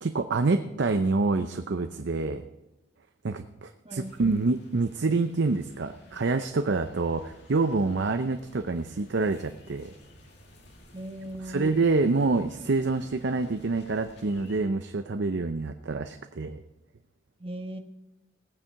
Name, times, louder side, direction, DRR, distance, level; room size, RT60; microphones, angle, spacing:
voice 1, 0.0-2.5 3.2-9.9 11.4-16.6, right 3 dB, 65° right, 8 dB, 0.6 m, -27 dB
voice 2, 3.8-4.2 10.9-11.6 17.4-17.8, right 1 dB, 30° right, 4 dB, 1.3 m, -38 dB
sound 1, 3.9-14.6, left 1 dB, 65° left, 2.3 m, -53 dB
18.0 x 8.8 x 4.7 m, 0.96 s
head